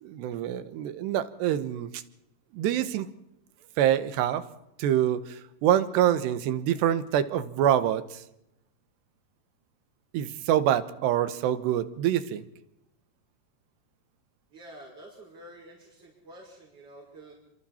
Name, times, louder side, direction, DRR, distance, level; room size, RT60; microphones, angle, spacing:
voice 1, 0.0-2.0 2.5-3.1 3.8-4.4 4.8-8.2 10.1-12.4, right 11 dB, 85° right, 12 dB, 3.3 m, -26 dB
voice 2, 14.5-17.3, right 1 dB, 35° right, -3 dB, 6.7 m, -48 dB
29.5 x 26.0 x 4.4 m, 0.85 s
omnidirectional pair, 4.7 m